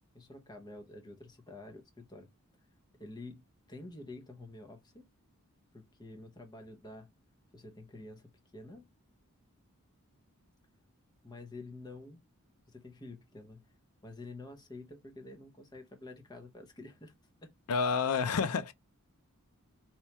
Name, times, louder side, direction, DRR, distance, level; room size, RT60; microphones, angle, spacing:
voice 1, 0.1-2.3 3.0-5.0 5.7-7.1 7.5-8.9 11.2-12.2 12.7-13.7 14.0-17.1 17.4-17.5, left 2 dB, 20° left, 0.6 m, -49 dB
voice 2, 17.7-18.7, left 5 dB, 75° left, 0.4 m, -29 dB
2.9 x 2.3 x 4.2 m
head